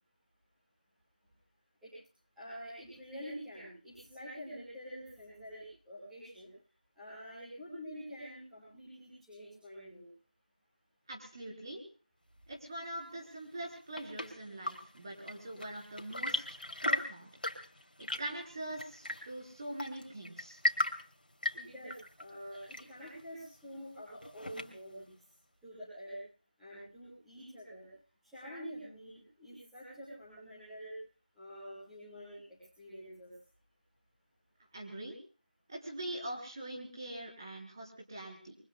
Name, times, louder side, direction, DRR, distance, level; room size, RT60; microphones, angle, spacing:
voice 1, 2.4-6.5 7.0-10.1 21.5-25.1 25.6-26.2 26.6-27.9 28.2-31.0 31.4-33.3, equal, ahead, -14 dB, 6.1 m, -47 dB
voice 2, 11.1-11.8 12.5-16.6 16.8-17.3 18.0-20.6 34.7-35.2 35.7-38.6, right 1 dB, 25° right, 0 dB, 3.8 m, -43 dB
Chirp tweet / Engine / Tap, 13.5-25.0, left 1 dB, 85° left, 2.7 m, -39 dB
27.5 x 23.5 x 2.2 m, 0.38 s
figure-of-eight pair, 175°, 5 cm